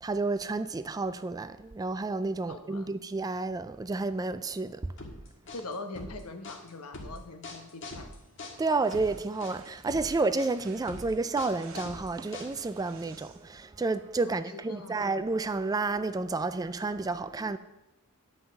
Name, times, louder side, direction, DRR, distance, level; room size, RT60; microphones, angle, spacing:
voice 1, 0.0-4.9 8.6-17.6, right 3 dB, 15° right, 0.3 m, -30 dB
voice 2, 2.5-3.0 5.5-8.1 14.2-15.1, left 3 dB, 75° left, 1.1 m, -42 dB
sound 1, 5.0-12.8, left 2 dB, 60° left, 1.8 m, -43 dB
sound 2, 8.0-13.6, right 5 dB, 65° right, 1.1 m, -55 dB
9.7 x 5.6 x 6.9 m
head